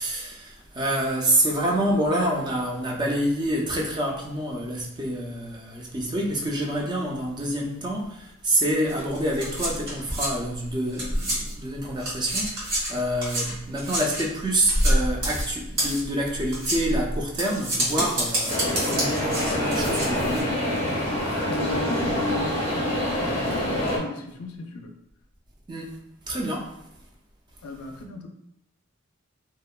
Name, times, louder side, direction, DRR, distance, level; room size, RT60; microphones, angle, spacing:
voice 1, 0.0-20.6 25.7-26.0 26.3-26.7, right 1 dB, 20° right, -1 dB, 0.3 m, -27 dB
sound 1, 8.9-11.7 12.0-20.4, equal, 80° right, 1.4 m, -28 dB
sound 2, 18.5-24.0, left 1 dB, 25° left, 0.6 m, -26 dB
voice 2, 21.4-24.9 27.6-28.3, left 3 dB, 80° left, 4 dB, 0.4 m, -35 dB
2.8 x 2.1 x 2.3 m, 0.81 s
head